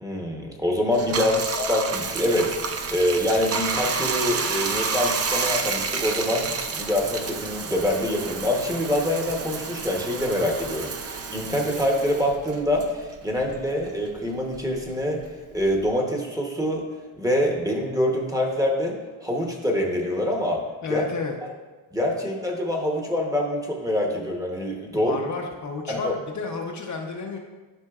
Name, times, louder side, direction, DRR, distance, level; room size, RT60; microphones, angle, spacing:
voice 1, 0.0-15.2 15.5-16.8 17.2-20.6 20.9-21.0 21.4-21.5 21.9-25.2 25.9-26.1, left 1 dB, 10° right, 0 dB, 0.9 m, -25 dB
Bathtub (filling or washing), 0.9-13.7 14.1-15.9, right 5 dB, 35° right, 0.5 m, -30 dB
voice 2, 1.1-1.4 20.8-21.3 25.0-27.4, left 4 dB, 40° left, 1 dB, 0.7 m, -31 dB
11.5 x 5.6 x 2.4 m, 1.3 s
cardioid pair, 145°, 46 cm